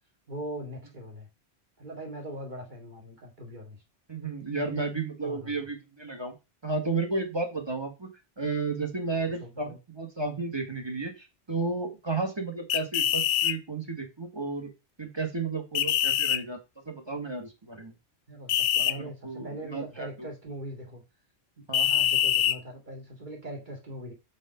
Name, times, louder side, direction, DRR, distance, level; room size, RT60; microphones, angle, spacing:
voice 1, 0.3-1.3 1.8-3.8 5.2-5.6 9.1-9.8 18.3-21.0 21.6-24.1, right 1 dB, 45° right, 2.3 m, -41 dB
voice 2, 4.1-6.3 6.6-8.1 8.4-14.7 15.0-16.6 16.8-17.9 18.8-20.3 21.7-21.9, right 3 dB, 25° right, 1.8 m, -33 dB
sound 1, 12.7-13.5 15.7-16.4 18.5-18.9 21.7-22.6, left 11 dB, 75° left, 0.8 m, -24 dB
5.4 x 5.2 x 5.1 m
omnidirectional pair, 1.1 m